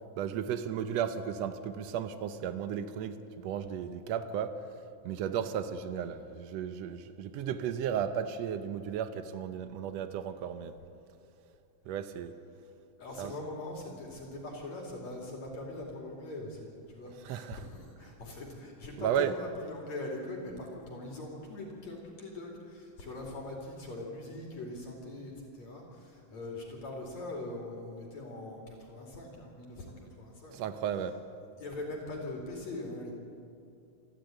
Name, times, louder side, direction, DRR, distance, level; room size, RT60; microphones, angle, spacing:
voice 1, 0.2-4.6 5.0-10.8 11.9-12.4 13.2-13.4 17.1-17.7 19.0-19.3 30.5-31.2, right 8 dB, 80° right, 10 dB, 1.5 m, -34 dB
voice 2, 13.0-30.6 31.6-33.1, left 2 dB, 55° left, -1 dB, 3.7 m, -42 dB
28.0 x 12.0 x 9.1 m, 2.7 s
omnidirectional pair, 4.1 m